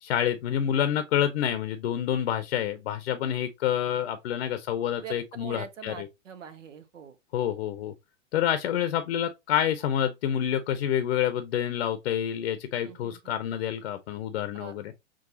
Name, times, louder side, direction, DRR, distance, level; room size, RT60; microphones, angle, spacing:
voice 1, 0.0-6.1 7.3-7.9 8.3-14.9, left 10 dB, 60° left, 0.7 m, -28 dB
voice 2, 5.0-7.2 12.8-13.3 14.6-14.7, right 7 dB, 85° right, 0.9 m, -43 dB
6.1 x 2.3 x 2.7 m
hypercardioid pair, 110°, 37 cm